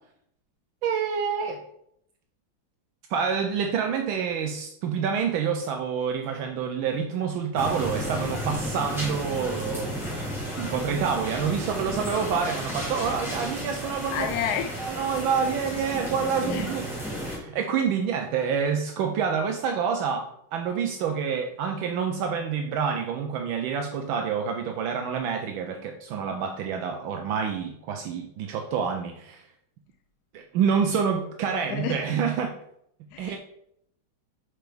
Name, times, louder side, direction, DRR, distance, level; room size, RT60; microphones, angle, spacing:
voice 1, 0.8-1.6 3.1-10.0 10.6-14.3 14.9-29.5 30.3-32.6 33.2-33.4, right 6 dB, 80° right, 4 dB, 1.4 m, -27 dB
sound 1, 7.6-17.4, equal, ahead, 2.1 m, -33 dB
voice 2, 14.1-14.7 16.5-16.7 31.7-32.0 33.1-33.4, left 8 dB, 75° left, 6 dB, 0.9 m, -30 dB
5.1 x 4.7 x 5.9 m, 0.73 s
omnidirectional pair, 2.2 m